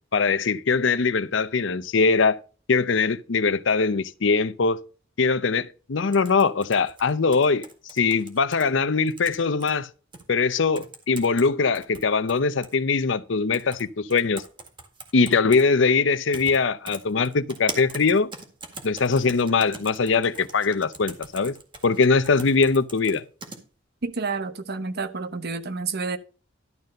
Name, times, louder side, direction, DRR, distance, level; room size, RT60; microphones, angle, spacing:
voice 1, 0.1-2.4 2.7-4.8 5.2-7.7 7.9-9.9 10.3-14.4 15.1-18.3 18.8-21.5 21.8-23.2, left 4 dB, 65° left, 0.6 m, -22 dB
sound 1, 6.1-8.6 9.1-9.7 10.1-10.2 10.8-11.5 11.8-12.8 13.5-13.8 14.1-15.6 16.3-16.6 16.9-23.6, right 3 dB, 25° right, 1.9 m, -40 dB
voice 2, 24.0-26.2, right 4 dB, 55° right, 1.0 m, -29 dB
12.0 x 4.1 x 6.5 m
head